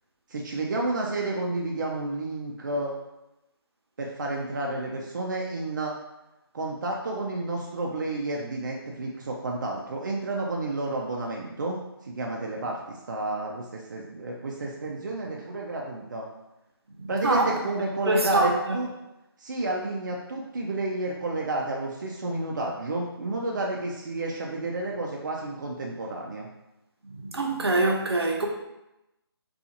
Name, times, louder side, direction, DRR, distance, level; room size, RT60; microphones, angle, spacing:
voice 1, 0.3-2.9 4.0-6.0 6.5-11.8 12.1-16.3 17.1-18.9 19.4-26.5, right 2 dB, 50° right, -1 dB, 0.4 m, -31 dB
voice 2, 16.9-17.6 18.1-18.8 27.0-28.5, right 2 dB, 80° right, 0 dB, 0.6 m, -25 dB
2.6 x 2.4 x 2.7 m, 0.92 s
figure-of-eight pair, 160°, 13 cm